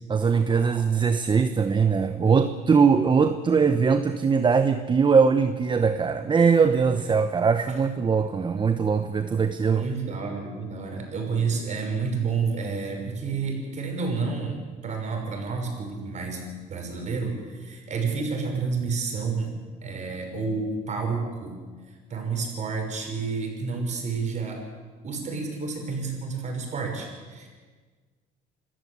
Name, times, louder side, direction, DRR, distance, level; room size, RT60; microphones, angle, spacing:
voice 1, 0.1-9.9, right 5 dB, 30° right, 9 dB, 0.9 m, -21 dB
voice 2, 9.7-19.5 19.8-21.6 21.9-24.6 25.0-27.5, right 4 dB, 45° right, 3 dB, 6.1 m, -30 dB
26.5 x 14.0 x 8.2 m, 1.4 s
cardioid pair, 110°, 17 cm